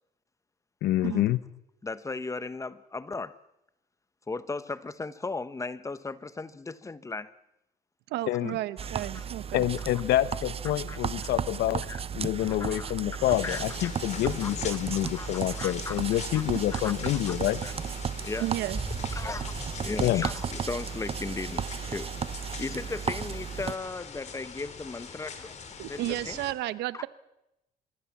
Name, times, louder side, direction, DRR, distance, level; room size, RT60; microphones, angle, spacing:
voice 1, 0.8-1.4 8.3-8.6 9.5-11.8 12.1-17.6 20.0-20.3, left 14 dB, 75° left, 16 dB, 1.1 m, -27 dB
voice 2, 1.8-3.4 4.3-7.3 9.1-9.2 10.9-11.3 11.9-12.0 12.5-13.9 14.2-14.8 15.1-16.0 16.3-16.4 16.7-17.7 18.2-18.5 19.1-19.5 19.8-22.1 22.6-25.5 25.9-26.0 26.3-26.4 26.9-27.0, left 3 dB, 20° left, 15 dB, 1.0 m, -37 dB
voice 3, 8.1-9.6 18.4-18.8 25.8-27.1, right 16 dB, 85° right, 15 dB, 1.2 m, -33 dB
sound 1, 8.8-23.8, right 7 dB, 35° right, 0.9 m, -35 dB
sound 2, 13.3-26.5, left 6 dB, 40° left, 3.5 m, -42 dB
Boom, 18.6-21.6, right 2 dB, 15° right, 6.3 m, -40 dB
25.0 x 22.0 x 7.4 m, 0.86 s
cardioid pair, 110°, 17 cm